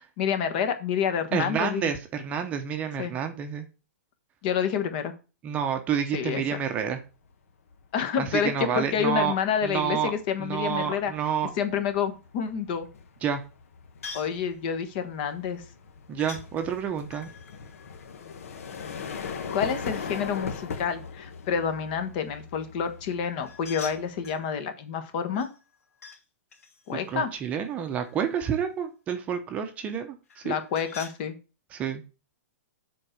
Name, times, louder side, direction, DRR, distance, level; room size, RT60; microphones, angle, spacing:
voice 1, 0.2-1.9 3.0-3.1 4.4-5.1 6.1-6.4 7.9-11.1 11.6-12.9 14.1-15.6 19.5-25.5 26.9-27.3 30.4-31.4, left 7 dB, 40° left, 9 dB, 1.3 m, -28 dB
voice 2, 1.3-3.7 5.4-7.0 8.2-9.3 9.6-10.1 10.4-11.5 13.2-13.4 16.1-17.3 26.9-30.5 31.7-32.0, right 8 dB, 20° right, 6 dB, 0.8 m, -29 dB
sound 1, 7.0-7.3 7.7-24.4, left 6 dB, 70° left, 1.4 m, -40 dB
sound 2, 14.0-14.4 16.2-16.5 17.1-18.9 23.4-24.5 25.3-26.2 26.5-28.4 30.3-31.2, left 5 dB, 85° left, 2.7 m, -45 dB
7.4 x 4.5 x 6.6 m, 0.32 s
hypercardioid pair, 160°, 8 cm